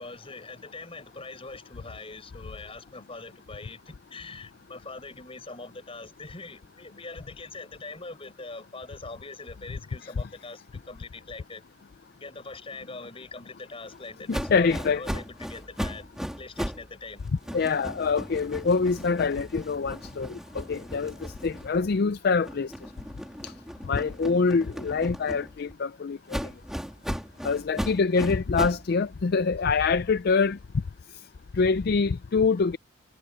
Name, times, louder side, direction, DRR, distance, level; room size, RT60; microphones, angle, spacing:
voice 1, 0.0-11.6 12.2-16.1 16.4-17.2, left 3 dB, 30° left, 6.4 m, -42 dB
voice 2, 14.3-15.0 17.5-22.7 23.4-23.5 23.9-26.2 27.4-30.6 31.5-32.8, left 4 dB, 50° left, 0.4 m, -25 dB
sound 1, 14.3-16.9 17.2-22.0 22.4-25.7 26.3-28.9, equal, ahead, 2.3 m, -36 dB
head